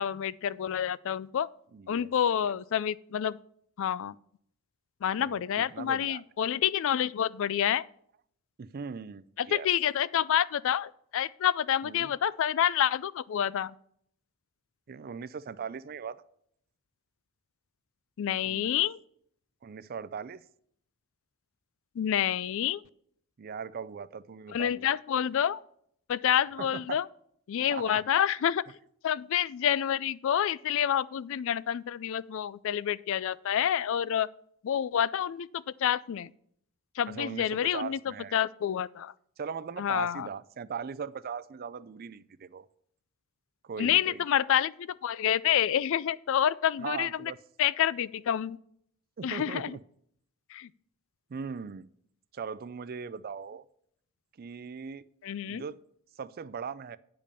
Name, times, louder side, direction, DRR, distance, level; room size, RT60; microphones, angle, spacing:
voice 1, 0.0-1.5 1.9-3.4 3.8-4.1 5.0-7.8 9.4-13.7 18.2-19.0 22.0-22.8 24.5-25.6 26.1-27.1 27.5-28.6 29.0-34.3 34.6-36.3 37.0-38.0 38.3-39.1 39.8-40.3 43.8-44.7 45.0-47.3 47.6-48.6 49.2-49.8 50.5-50.7 55.2-55.6, left 9 dB, 60° left, 0.3 m, -28 dB
voice 2, 1.7-2.1 2.4-2.6 5.2-6.2 8.6-9.7 11.8-12.1 14.9-16.2 18.4-18.8 19.6-20.4 23.4-24.9 26.6-27.0 27.7-28.0 37.1-38.4 39.4-42.7 43.6-44.3 46.8-47.4 49.2-49.8 51.3-51.9 52.3-53.6 54.4-55.0 55.5-55.8 56.2-57.0, right 6 dB, 45° right, 0.4 m, -39 dB
8.9 x 5.2 x 6.7 m
head